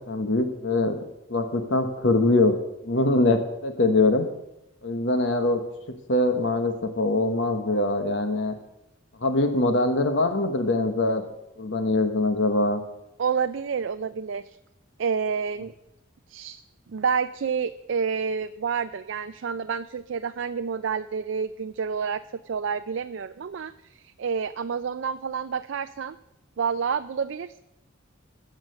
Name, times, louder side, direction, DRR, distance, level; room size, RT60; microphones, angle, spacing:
voice 1, 0.1-1.0 1.3-2.5 2.8-4.3 4.8-5.6 6.1-8.5 9.2-11.2 11.6-12.8, left 2 dB, 65° left, 6 dB, 1.1 m, -23 dB
voice 2, 13.2-14.6 15.0-15.7 16.3-16.6 16.9-26.2 26.6-27.6, right 6 dB, 70° right, 10 dB, 0.4 m, -29 dB
16.0 x 6.5 x 6.5 m, 0.88 s
head